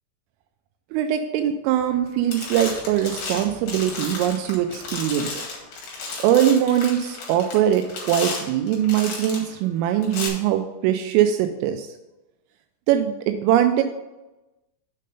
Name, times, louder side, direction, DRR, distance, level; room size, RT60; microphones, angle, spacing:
voice 1, 0.9-5.4 6.2-11.9 12.9-13.8, right 10 dB, 85° right, 6 dB, 3.1 m, -22 dB
sound 1, 1.8-2.0 2.3-9.5 10.0-10.3, left 4 dB, 55° left, 3.1 m, -33 dB
7.4 x 5.5 x 5.4 m, 1.0 s
omnidirectional pair, 5.8 m